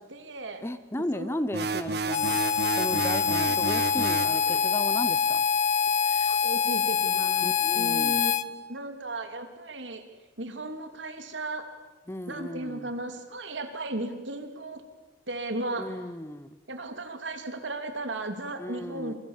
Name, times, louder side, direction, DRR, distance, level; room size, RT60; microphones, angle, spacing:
voice 1, 0.1-0.6 1.1-1.4 3.5-3.8 4.3-4.7 6.0-10.0 10.4-11.7 12.3-14.8 15.3-16.0 16.7-19.1, right 2 dB, 85° right, 7 dB, 2.8 m, -36 dB
voice 2, 0.6-2.4 2.8-5.4 7.4-8.2 12.1-12.9 15.8-16.6 18.6-19.2, left 1 dB, 15° left, 14 dB, 0.9 m, -35 dB
sound 1, 1.5-4.4, right 3 dB, 60° right, 1.4 m, -31 dB
Harmonica, 2.1-8.4, left 7 dB, 40° left, 1.0 m, -25 dB
27.5 x 23.5 x 7.4 m, 1.2 s
head